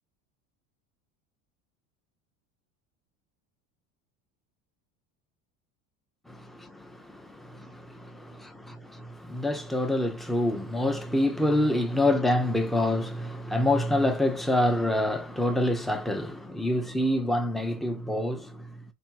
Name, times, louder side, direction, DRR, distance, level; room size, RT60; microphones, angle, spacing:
voice 1, 6.3-18.7, left 1 dB, ahead, 0.5 m, -27 dB
3.3 x 2.6 x 4.5 m
supercardioid pair, 120°, 39 cm